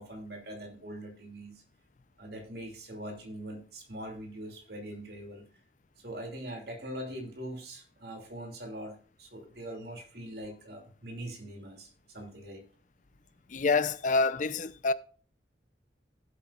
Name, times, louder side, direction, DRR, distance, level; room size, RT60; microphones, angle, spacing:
voice 1, 0.0-1.6 2.2-5.4 6.0-12.6, right 1 dB, 60° right, 2.6 m, -42 dB
voice 2, 13.5-14.9, left 3 dB, 45° left, 0.5 m, -27 dB
17.0 x 8.2 x 2.4 m
head